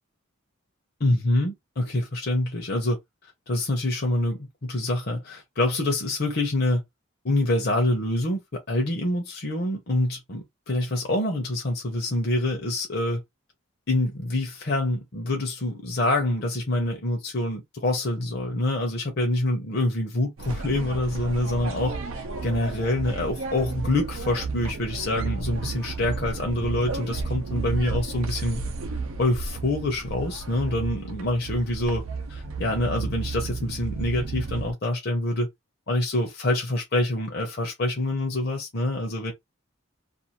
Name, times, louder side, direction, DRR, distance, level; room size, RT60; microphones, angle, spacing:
voice 1, 1.0-3.0 3.5-6.8 7.2-13.2 13.9-21.9 22.4-28.6 29.2-32.0 32.3-35.5 35.9-39.3, left 1 dB, 50° left, 0.7 m, -26 dB
sound 1, 20.4-34.7, right 4 dB, 80° right, 0.6 m, -33 dB
2.5 x 2.4 x 2.9 m
head